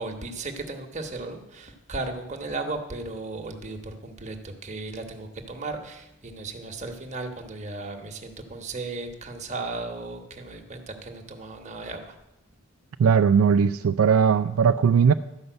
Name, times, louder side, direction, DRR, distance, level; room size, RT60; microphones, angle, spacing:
voice 1, 0.0-12.2, right 3 dB, 35° right, 4 dB, 1.2 m, -35 dB
voice 2, 13.0-15.1, right 6 dB, 70° right, 11 dB, 0.3 m, -19 dB
12.5 x 5.5 x 7.9 m, 0.92 s
head